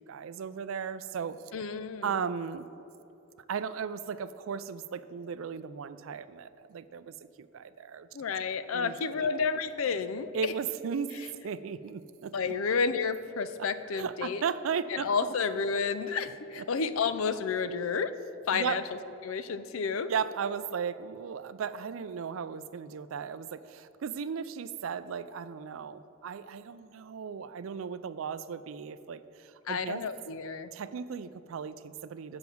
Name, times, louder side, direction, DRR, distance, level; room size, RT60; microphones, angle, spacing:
voice 1, 0.0-1.4 2.0-2.7 3.5-8.1 8.7-9.3 10.3-11.2 11.4-12.3 13.9-15.3 16.6-16.7 18.5-18.8 20.1-30.0 30.7-32.4, right 6 dB, 75° right, 14 dB, 0.4 m, -36 dB
voice 2, 1.5-2.2 8.1-10.5 12.3-14.4 14.9-18.1 18.5-18.8 19.2-20.1 29.7-30.7, left 5 dB, 80° left, 13 dB, 0.5 m, -31 dB
7.8 x 5.9 x 7.0 m, 2.9 s
head